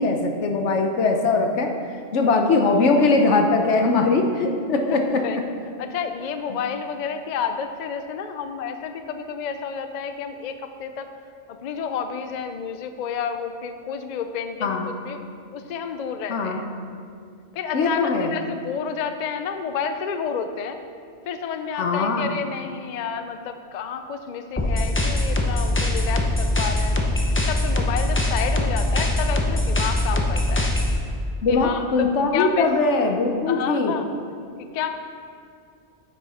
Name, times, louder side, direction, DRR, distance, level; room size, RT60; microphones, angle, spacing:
voice 1, 0.0-1.7 2.1-5.2 6.5-6.6 14.6-14.9 16.3-16.7 17.7-18.3 21.7-22.3 31.4-33.9, left 3 dB, 85° left, 4 dB, 1.2 m, -21 dB
voice 2, 5.8-11.1 11.5-15.2 15.5-16.7 17.5-20.8 21.3-27.0 27.5-30.7 31.5-32.7 33.5-34.1 34.7-34.9, left 6 dB, 50° left, 8 dB, 0.5 m, -30 dB
sound 1, 24.6-31.0, left 1 dB, 15° left, 0.6 m, -22 dB
9.3 x 7.3 x 4.2 m, 2.3 s
omnidirectional pair, 1.2 m